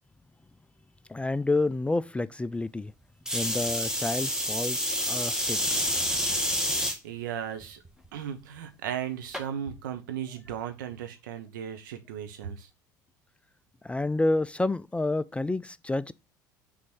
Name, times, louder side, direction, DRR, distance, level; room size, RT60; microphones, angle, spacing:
voice 1, 1.1-2.9 3.3-5.8 13.8-16.1, left 2 dB, 10° left, 0.3 m, -29 dB
sound 1, 3.3-7.0 7.6-8.1 9.3-9.4, equal, 5° right, 1.6 m, -28 dB
voice 2, 6.7-7.8 8.1-12.7, right 9 dB, 75° right, 1.2 m, -36 dB
6.2 x 4.0 x 6.2 m
figure-of-eight pair, 65°, 11 cm